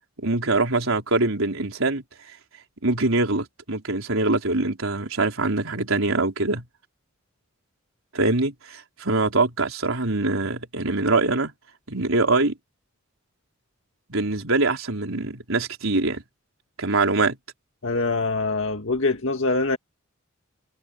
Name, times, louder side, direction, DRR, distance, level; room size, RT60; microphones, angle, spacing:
voice 1, 0.2-2.0 2.8-6.6 8.1-11.5 11.9-12.5 14.1-16.2 16.8-17.4, right 2 dB, 85° right, 4.1 m, -23 dB
voice 2, 17.8-19.8, left 3 dB, 70° left, 1.9 m, -24 dB
head